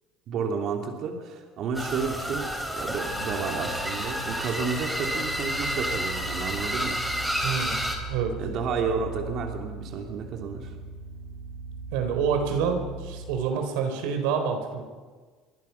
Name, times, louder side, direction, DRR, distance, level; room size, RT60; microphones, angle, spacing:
voice 1, 0.3-7.0 8.4-10.7, right 5 dB, 50° right, 2 dB, 3.0 m, -31 dB
sound 1, 1.7-8.0, equal, ahead, 3.4 m, -30 dB
sound 2, 3.1-13.3, right 3 dB, 70° right, 2.8 m, -40 dB
voice 2, 7.4-7.8 8.1-8.4 11.9-14.8, right 6 dB, 90° right, 6 dB, 4.0 m, -27 dB
26.0 x 24.0 x 5.9 m, 1.5 s
cardioid pair, 150°, 0 cm